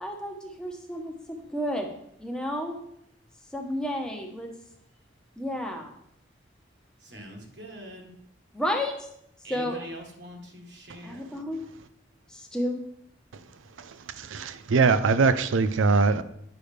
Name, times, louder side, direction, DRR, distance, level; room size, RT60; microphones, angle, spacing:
voice 1, 0.0-1.9 2.2-2.8 3.5-4.5 5.4-5.9 8.5-8.9 9.5-9.8 11.0-11.6 12.3-12.8, left 1 dB, 5° left, 1 dB, 0.9 m, -31 dB
voice 2, 7.0-8.1 9.4-11.3, equal, 60° right, 2 dB, 1.5 m, -43 dB
voice 3, 14.2-16.2, right 4 dB, 85° right, 13 dB, 0.5 m, -22 dB
8.8 x 6.3 x 3.3 m, 0.74 s
head